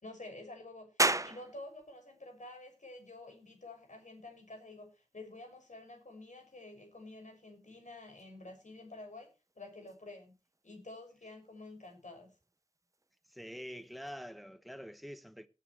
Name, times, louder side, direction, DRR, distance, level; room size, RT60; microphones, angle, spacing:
voice 1, 0.0-9.3 9.5-10.3 10.6-12.3, left 2 dB, 80° left, 6.4 m, -50 dB
sound 1, 1.0-14.1, right 2 dB, 25° right, 0.7 m, -42 dB
voice 2, 13.3-15.5, equal, ahead, 1.4 m, -46 dB
18.5 x 10.0 x 3.2 m
wide cardioid pair, 55°, 13 cm